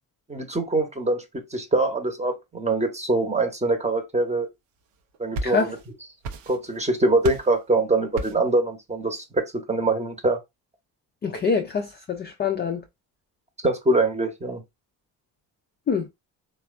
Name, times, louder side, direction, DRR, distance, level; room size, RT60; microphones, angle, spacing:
voice 1, 0.3-4.5 5.2-5.8 6.5-10.4 13.6-14.6, right 2 dB, 15° right, 0.8 m, -24 dB
sound 1, 4.9-5.9 6.2-6.8 7.2-7.6 8.2-8.5, right 2 dB, 70° right, 0.7 m, -33 dB
voice 2, 5.4-5.7 11.2-12.8 15.9-16.1, left 5 dB, 25° left, 0.4 m, -25 dB
3.2 x 2.2 x 2.4 m
hypercardioid pair, 55°, 48 cm